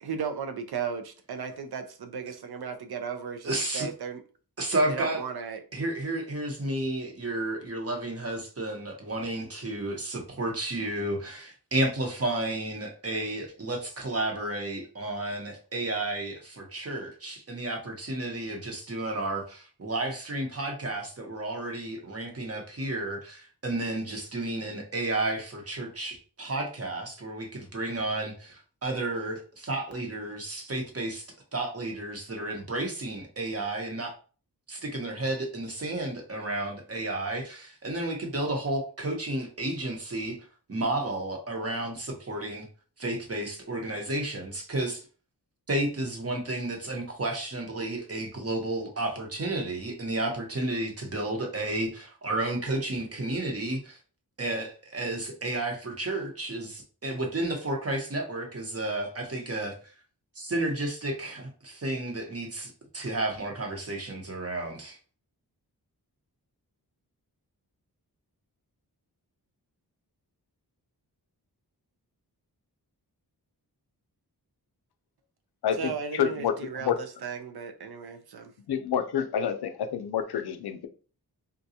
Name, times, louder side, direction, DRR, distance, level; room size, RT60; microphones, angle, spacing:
voice 1, 0.0-4.2 4.9-5.6 75.7-78.5, right 6 dB, 75° right, 7 dB, 0.5 m, -35 dB
voice 2, 3.4-3.9 4.6-5.2 5.7-31.2 31.5-34.1 34.7-40.4 40.7-42.7 43.0-45.0 45.7-54.0 54.4-59.7 60.3-65.0, right 2 dB, 40° right, 2 dB, 0.9 m, -32 dB
voice 3, 76.2-76.5 76.9-77.0 78.7-80.9, left 8 dB, 75° left, 8 dB, 0.5 m, -28 dB
3.8 x 2.2 x 2.8 m, 0.39 s
wide cardioid pair, 90°, 39 cm